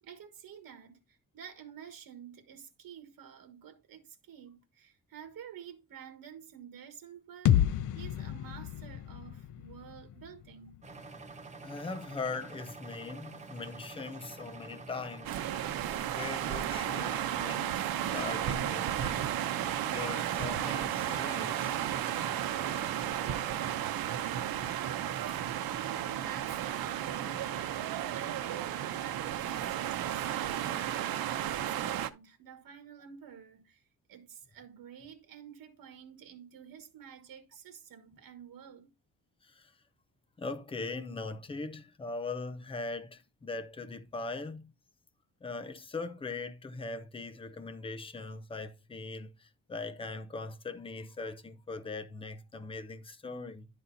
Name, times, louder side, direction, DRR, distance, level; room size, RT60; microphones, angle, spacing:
voice 1, 0.0-10.8 25.7-33.8 34.1-38.9, right 8 dB, 70° right, 1.5 m, -50 dB
sound 1, 7.5-11.3, left 11 dB, 60° left, 0.6 m, -31 dB
sound 2, 10.8-23.7, right 4 dB, 20° right, 0.9 m, -48 dB
voice 2, 11.6-15.4 15.8-15.9 16.1-19.3 19.8-21.8 39.4-39.7 40.4-44.7 45.4-53.7, left 3 dB, 15° left, 0.6 m, -40 dB
sound 3, 15.2-32.1, right 11 dB, 90° right, 0.8 m, -33 dB
11.0 x 4.2 x 3.9 m
wide cardioid pair, 175°, 35 cm